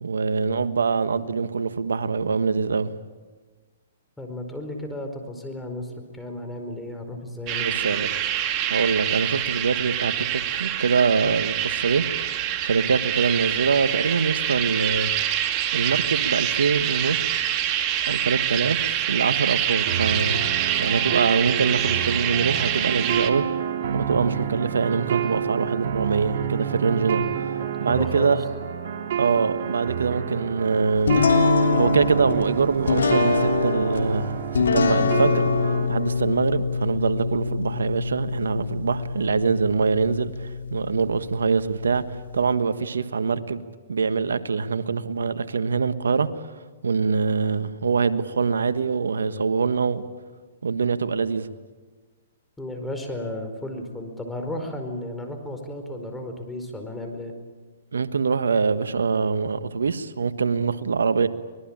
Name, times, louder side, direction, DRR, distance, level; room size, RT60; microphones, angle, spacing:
voice 1, 0.0-2.9 7.6-8.3 8.7-12.0 12.6-15.1 15.7-17.7 18.1-20.4 20.8-23.4 23.9-27.5 27.8-28.4 29.2-31.2 31.7-35.4 35.9-42.0 42.3-43.6 43.9-46.3 46.8-50.0 50.6-51.5 57.9-61.3, right 5 dB, 85° right, 12 dB, 1.4 m, -24 dB
voice 2, 4.2-8.0 27.6-28.3 52.6-57.3, left 1 dB, 5° left, 4 dB, 4.7 m, -34 dB
sound 1, 7.5-23.3, right 11 dB, 35° right, 2.3 m, -25 dB
sound 2, 19.9-35.9, right 8 dB, 55° right, 3.1 m, -29 dB
sound 3, 31.1-42.5, left 4 dB, 85° left, 3.3 m, -25 dB
24.5 x 20.5 x 8.9 m, 1.4 s
hypercardioid pair, 135°, 0 cm